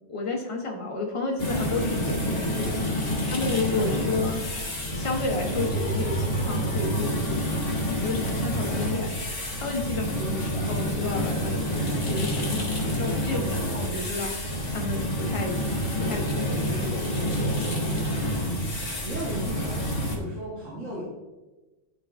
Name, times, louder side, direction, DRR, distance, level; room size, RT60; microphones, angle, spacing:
voice 1, 0.1-7.6 8.0-9.1 9.6-14.3 14.7-15.6 15.9-18.1, left 3 dB, 25° left, 0 dB, 1.0 m, -32 dB
sound 1, 1.4-20.2, equal, 50° left, 1.5 m, -28 dB
voice 2, 3.1-3.7 8.7-9.0 10.3-10.4 18.4-21.0, right 1 dB, 75° right, -7 dB, 1.7 m, -38 dB
11.5 x 3.9 x 2.5 m, 1.1 s
omnidirectional pair, 1.3 m